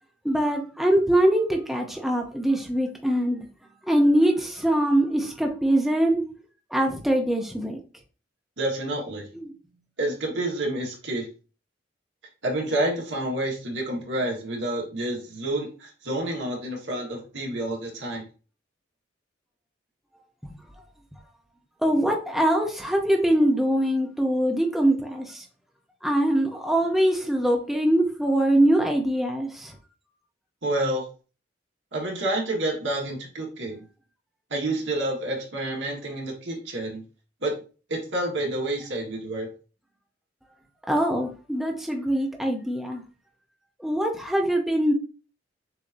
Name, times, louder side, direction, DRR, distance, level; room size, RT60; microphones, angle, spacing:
voice 1, 0.2-3.4 3.9-6.2 6.7-7.8 9.3-9.5 21.8-25.4 26.0-29.7 40.9-43.0 43.8-44.9, right 1 dB, ahead, 0.5 m, -23 dB
voice 2, 8.6-9.2 10.0-11.3 12.4-18.2 30.6-31.0 31.9-33.8 34.5-37.0 37.4-37.5 37.9-39.5, right 1 dB, 70° right, 1.5 m, -29 dB
6.5 x 2.6 x 2.6 m
head